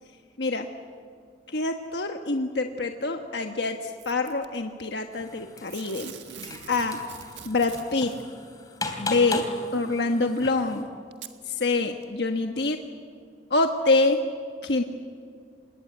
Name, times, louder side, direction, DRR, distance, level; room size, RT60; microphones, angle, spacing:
voice 1, 1.5-6.1 6.7-7.0 7.4-8.1 9.0-9.4 9.7-10.9 11.5-12.8 13.5-14.2 14.6-14.8, left 3 dB, 65° left, 4 dB, 1.3 m, -25 dB
Packing tape duct tape / Tearing, 4.0-4.5 5.7-8.2 9.4-9.5 10.4-10.5 11.1-11.4 12.0-12.1, right 8 dB, 75° right, 1.5 m, -44 dB
sound 1, 5.1-10.8, left 2 dB, 20° left, 2.9 m, -37 dB
26.5 x 20.5 x 9.4 m, 2.2 s
head